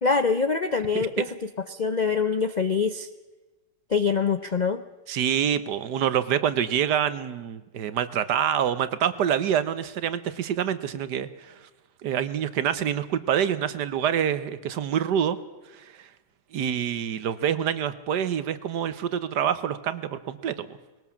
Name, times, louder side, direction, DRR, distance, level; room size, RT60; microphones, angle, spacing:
voice 1, 0.0-1.3 1.7-3.1 3.9-4.8, left 5 dB, 80° left, 10 dB, 0.4 m, -24 dB
voice 2, 5.1-11.6 12.0-15.4 16.5-20.8, right 9 dB, 75° right, 14 dB, 1.5 m, -26 dB
20.5 x 18.5 x 7.2 m, 1.2 s
omnidirectional pair, 1.9 m